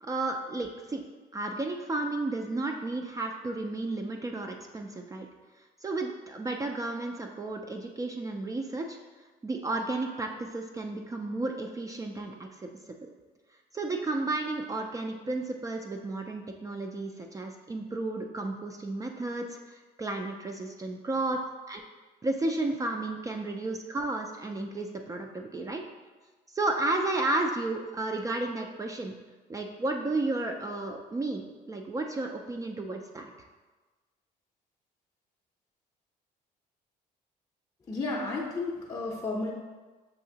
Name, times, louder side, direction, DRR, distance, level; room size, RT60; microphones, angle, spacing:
voice 1, 0.0-1.0 1.3-5.3 5.8-9.0 9.4-12.7 13.7-21.4 21.7-21.8 22.2-25.8 26.5-29.1 29.5-33.3, right 2 dB, 20° right, 3 dB, 0.4 m, -32 dB
voice 2, 37.9-39.5, left 3 dB, 20° left, -4 dB, 0.6 m, -32 dB
6.6 x 2.7 x 2.7 m, 1.3 s
cardioid pair, 110°, 17 cm